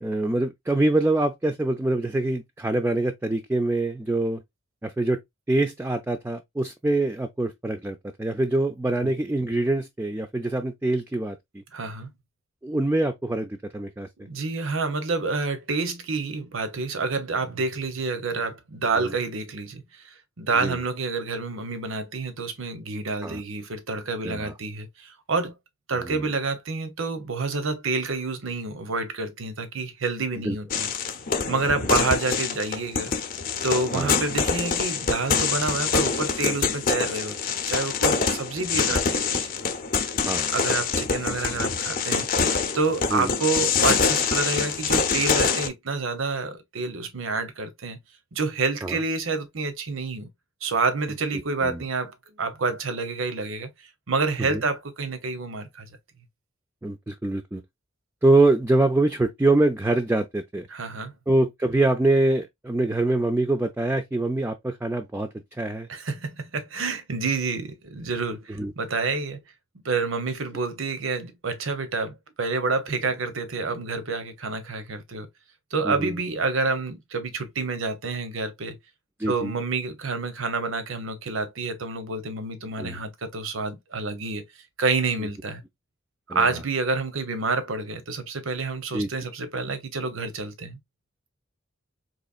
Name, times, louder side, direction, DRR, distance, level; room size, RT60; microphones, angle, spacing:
voice 1, 0.0-4.4 4.8-5.2 5.5-11.6 12.6-14.3 19.0-19.1 20.6-20.8 23.2-23.4 24.2-24.5 26.0-26.2 30.4-30.6 33.9-34.1 38.9-39.0 40.2-40.6 43.1-43.3 48.8-49.0 51.6-51.8 54.5-54.6 56.8-57.6 58.2-60.7 61.3-65.9 68.6-68.7 75.8-76.1 79.2-79.5 82.8-83.0 86.3-86.6 88.9-89.1, right 2 dB, 10° right, 0.3 m, -24 dB
voice 2, 11.7-12.1 14.2-25.5 25.9-30.9 31.5-33.1 33.6-39.5 40.5-42.3 42.7-48.0 48.3-50.3 50.6-53.7 54.1-55.9 60.7-61.1 65.9-69.4 69.7-75.3 75.7-78.8 79.3-84.4 84.8-85.6 86.3-90.8, right 3 dB, 90° right, 0.8 m, -28 dB
sound 1, 30.7-45.7, left 5 dB, 45° left, 0.6 m, -25 dB
4.0 x 3.0 x 2.4 m
head